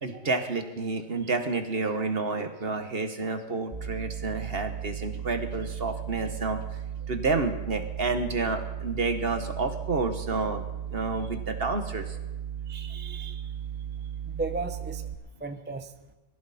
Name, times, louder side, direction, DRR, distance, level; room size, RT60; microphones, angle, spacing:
voice 1, 0.0-6.6 7.1-10.6 10.9-12.2, right 3 dB, 45° right, 7 dB, 1.5 m, -29 dB
sound 1, 3.7-15.1, right 9 dB, 30° right, 1.1 m, -36 dB
voice 2, 12.7-13.5 14.3-15.1 15.4-15.9, right 3 dB, 10° right, 7 dB, 0.6 m, -36 dB
22.0 x 15.0 x 4.3 m, 1.1 s
omnidirectional pair, 1.4 m